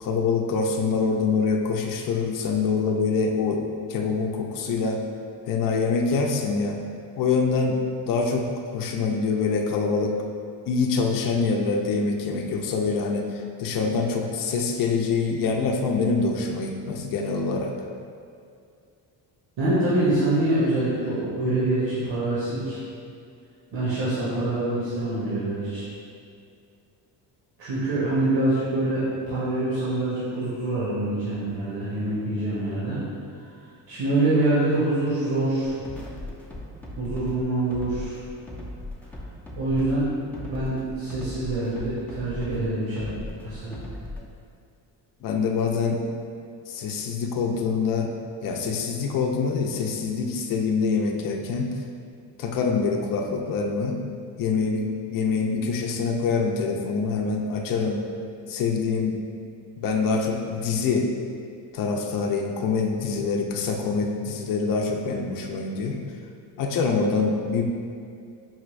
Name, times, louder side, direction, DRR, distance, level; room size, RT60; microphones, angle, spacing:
voice 1, 0.0-3.6 3.9-5.0 5.5-6.8 7.2-7.8 8.0-8.5 8.7-10.2 10.7-13.2 13.6-17.7 45.2-46.0 46.7-48.1 48.4-51.7 52.4-54.0 54.4-58.0 58.5-59.2 59.8-61.1 61.7-66.0 66.6-67.6, left 4 dB, 50° left, 1 dB, 0.5 m, -25 dB
voice 2, 19.6-22.8 23.7-25.8 27.6-33.0 33.9-35.7 37.0-38.2 39.5-40.1 40.4-43.1 43.4-43.8, right 2 dB, 85° right, -10 dB, 1.4 m, -25 dB
sound 1, 35.7-44.3, left 1 dB, 5° left, 0.5 m, -38 dB
5.6 x 2.5 x 3.1 m, 2.3 s
cardioid pair, 105°, 43 cm